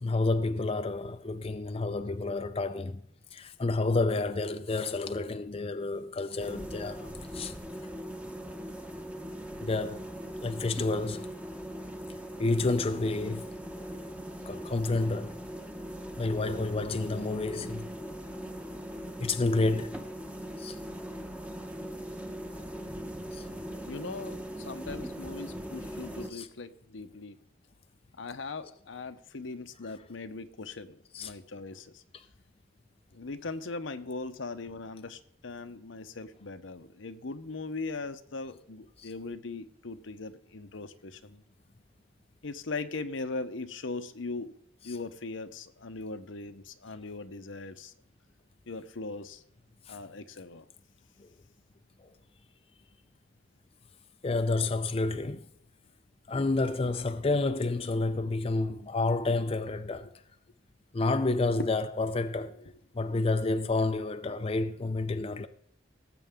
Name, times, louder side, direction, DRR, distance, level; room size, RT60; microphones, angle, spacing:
voice 1, 0.0-3.0 3.3-7.5 9.6-10.1 10.4-11.3 12.4-13.5 13.7-13.9 14.4-15.4 16.2-17.9 19.2-20.0 20.6-20.8 23.3-23.5 26.3-26.5 31.1-31.3 32.1-32.2 39.0-39.1 49.9-50.0 51.2-51.3 52.0-52.1 54.2-55.5 56.3-60.1 60.9-62.5 62.9-65.5, left 3 dB, 30° left, 0.5 m, -30 dB
sound 1, 6.4-26.3, equal, 5° right, 1.0 m, -40 dB
voice 2, 23.8-27.3 28.2-32.0 33.1-41.4 42.4-44.6 44.8-47.9 48.7-49.4 49.9-50.7 61.6-61.7, left 3 dB, 75° left, 0.9 m, -39 dB
18.5 x 8.0 x 3.7 m
head